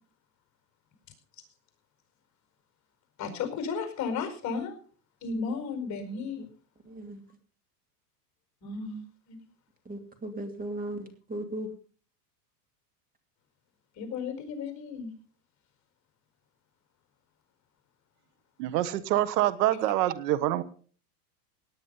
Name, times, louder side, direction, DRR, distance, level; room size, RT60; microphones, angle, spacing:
voice 1, 3.2-4.7 5.2-6.4 8.6-9.0 9.3-9.4 14.0-15.1, left 5 dB, 35° left, 6 dB, 5.1 m, -34 dB
voice 2, 6.9-7.2 9.9-11.7, right 1 dB, 15° right, 7 dB, 2.5 m, -37 dB
voice 3, 18.6-20.6, right 14 dB, 75° right, 15 dB, 1.4 m, -26 dB
18.0 x 10.0 x 5.5 m, 0.43 s
supercardioid pair, 130°, 48 cm